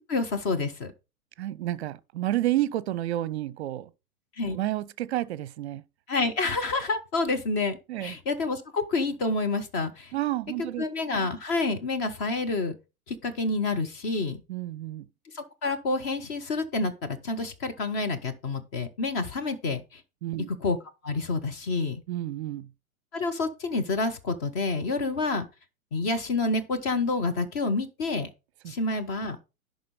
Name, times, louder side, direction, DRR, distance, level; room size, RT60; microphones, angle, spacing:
voice 1, 0.1-0.9 4.4-4.6 6.1-10.1 10.8-12.8 13.1-14.4 15.3-20.0 20.6-20.8 21.0-22.0 23.1-25.5 25.9-28.3 28.7-29.4, left 3 dB, 15° left, 0.4 m, -28 dB
voice 2, 1.4-3.9 4.5-5.8 7.9-8.2 10.1-10.8 14.5-15.1 20.2-20.5 22.1-22.7 28.6-28.7, right 14 dB, 45° right, 0.7 m, -30 dB
11.0 x 3.9 x 5.1 m
figure-of-eight pair, 105°, 45 cm